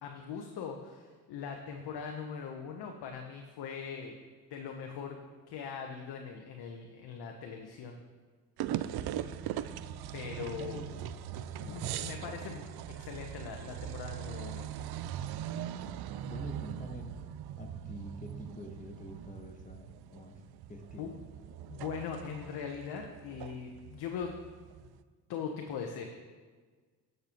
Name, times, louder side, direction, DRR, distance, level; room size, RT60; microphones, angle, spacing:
voice 1, 0.0-4.2 4.5-5.2 5.5-8.0 10.1-10.8 11.6-14.7 21.0-21.1 21.7-24.3 24.8-24.9 25.3-26.1, left 6 dB, 70° left, 2 dB, 1.1 m, -41 dB
sound 1, 8.6-25.0, right 11 dB, 65° right, 0.6 m, -41 dB
voice 2, 11.6-11.9 16.3-20.4 20.7-21.2, left 1 dB, 20° left, 3 dB, 1.3 m, -46 dB
16.0 x 6.8 x 3.0 m, 1.4 s
supercardioid pair, 65°, 41 cm